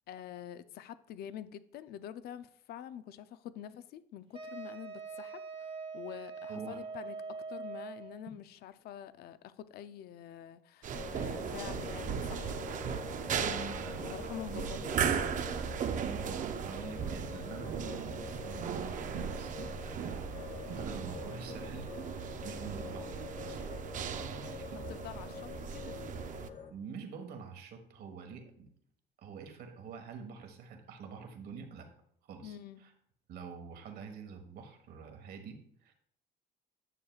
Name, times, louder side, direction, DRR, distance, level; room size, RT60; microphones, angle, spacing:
voice 1, 0.1-7.2 7.5-12.6 13.3-13.8 14.1-15.5 24.9-25.9 32.4-32.8, left 10 dB, 70° left, 0.5 m, -46 dB
Wind instrument woodwind instrument, 4.3-8.2, right 4 dB, 35° right, 0.9 m, -43 dB
voice 2, 6.5-6.8 13.3-14.8 16.0-21.9 22.2-23.6 24.2-24.9 26.7-28.7 29.2-31.9 32.2-32.9 33.3-35.9, right 6 dB, 70° right, 1.4 m, -46 dB
sound 1, 10.8-26.5, right 8 dB, 50° right, 0.5 m, -37 dB
sound 2, 10.9-26.7, left 6 dB, 45° left, 1.3 m, -46 dB
9.8 x 6.5 x 2.4 m
cardioid pair, 110°, 17 cm